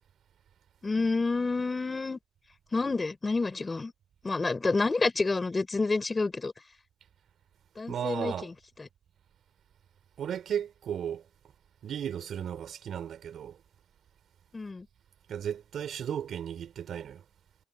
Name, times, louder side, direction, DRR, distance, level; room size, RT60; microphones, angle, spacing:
voice 1, 0.8-2.2 2.7-3.9 4.2-6.5 7.8-8.5 8.8-8.9 14.5-14.9, left 3 dB, 25° left, 4.2 m, -29 dB
voice 2, 7.9-8.5 10.2-11.2 11.8-13.6 15.3-17.2, right 9 dB, 65° right, 4.2 m, -35 dB
cardioid pair, 90°, 0 cm